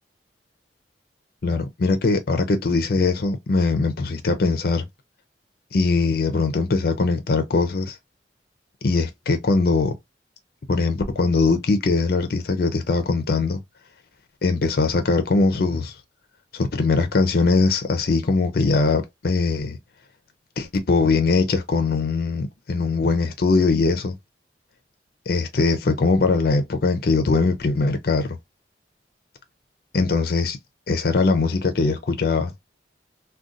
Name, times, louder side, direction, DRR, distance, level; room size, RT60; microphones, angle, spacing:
voice 1, 1.4-4.9 5.7-8.0 8.8-10.0 10.7-13.6 14.4-15.9 16.5-19.8 20.6-24.2 25.3-28.4 29.9-30.6 30.9-32.5, left 3 dB, 55° left, 0.5 m, -21 dB
2.5 x 2.2 x 3.8 m
head